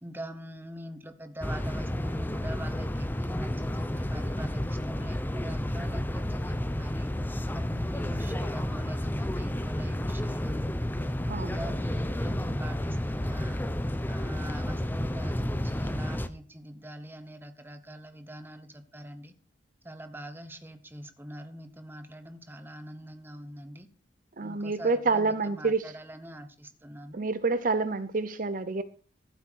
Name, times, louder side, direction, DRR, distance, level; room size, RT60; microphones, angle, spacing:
voice 1, 0.0-7.1 7.5-10.8 11.4-13.7 14.1-19.3 19.8-23.9 24.4-27.3, right 1 dB, 10° right, 1.1 m, -44 dB
sound 1, 1.4-16.3, left 1 dB, 10° left, 0.6 m, -31 dB
voice 2, 11.3-11.6 24.4-25.9 27.1-28.8, right 3 dB, 45° right, 0.7 m, -28 dB
14.5 x 8.2 x 4.6 m
head